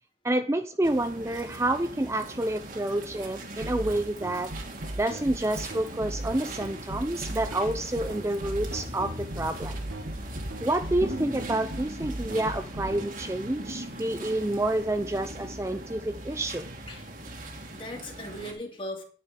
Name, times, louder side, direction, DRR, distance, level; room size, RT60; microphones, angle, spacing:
voice 1, 0.2-4.5 5.0-9.8 10.6-16.7, right 1 dB, 15° right, 9 dB, 0.5 m, -28 dB
sound 1, 0.8-18.5, right 1 dB, 45° right, 2.0 m, -40 dB
sound 2, 3.6-13.0, right 1 dB, 75° right, 1.5 m, -36 dB
voice 2, 16.9-17.2 17.7-19.0, left 1 dB, 30° left, 2 dB, 2.4 m, -39 dB
9.7 x 9.6 x 4.8 m, 0.43 s
head